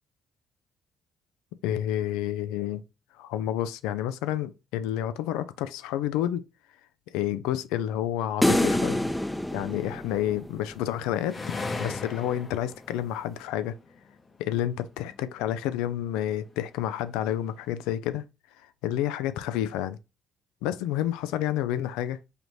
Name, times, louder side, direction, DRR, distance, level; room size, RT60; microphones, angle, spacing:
voice 1, 1.6-2.8 3.2-6.4 7.1-9.0 9.5-11.4 11.8-13.7 14.4-18.2 18.6-20.0 20.6-22.2, left 11 dB, 85° left, 0.3 m, -29 dB
sound 1, 8.4-10.8, left 1 dB, 5° left, 0.5 m, -26 dB
sound 2, 10.7-14.3 15.1-16.0, left 3 dB, 40° left, 0.8 m, -37 dB
4.9 x 2.6 x 3.1 m
hypercardioid pair, 55°, 0 cm